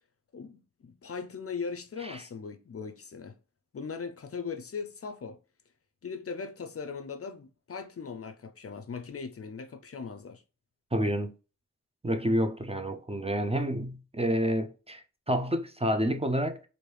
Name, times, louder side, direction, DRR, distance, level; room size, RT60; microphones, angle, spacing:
voice 1, 0.3-3.4 3.7-5.4 6.0-10.4, left 5 dB, 50° left, 0.5 m, -39 dB
voice 2, 10.9-11.3 12.0-16.6, equal, 20° right, 0.5 m, -29 dB
3.0 x 2.6 x 3.3 m
cardioid pair, 45°, 31 cm